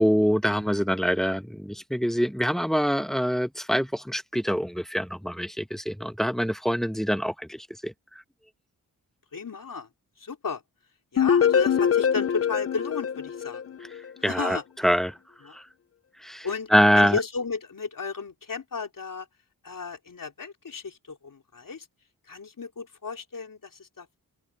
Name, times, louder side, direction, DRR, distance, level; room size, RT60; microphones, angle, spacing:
voice 1, 0.0-7.9 14.2-15.2 15.5-15.6 16.2-16.5 16.7-17.2, equal, ahead, 1.1 m, -24 dB
voice 2, 9.3-9.9 10.2-10.6 11.1-13.8 14.2-14.6 15.4-15.6 16.4-19.3 19.6-21.9 22.3-24.2, left 5 dB, 60° left, 3.7 m, -34 dB
sound 1, 11.2-14.1, left 8 dB, 40° left, 0.5 m, -23 dB
open air
wide cardioid pair, 75°, 37 cm